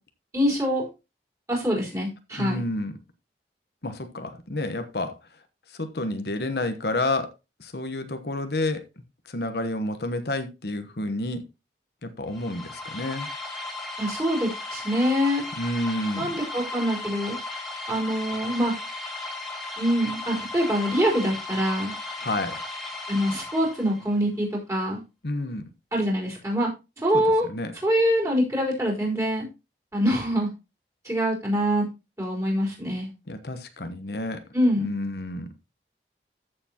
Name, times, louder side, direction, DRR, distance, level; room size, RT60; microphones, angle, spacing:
voice 1, 0.3-0.9 1.5-2.6 14.0-15.4 16.2-17.4 17.9-18.7 19.8-21.9 23.1-25.0 25.9-26.7 27.0-27.5 27.8-29.5 29.9-30.5 31.0-31.9 32.2-33.1 34.5-34.9, equal, 15° right, 4.2 m, -24 dB
voice 2, 2.4-3.0 3.8-5.2 5.7-7.3 7.6-8.8 9.3-11.4 12.0-13.3 15.6-16.3 22.2-22.6 25.2-25.6 27.1-27.7 33.3-34.4 34.8-35.5, left 2 dB, 65° left, 1.1 m, -30 dB
sound 1, 12.3-24.1, left 2 dB, ahead, 2.2 m, -36 dB
14.0 x 6.9 x 2.9 m
head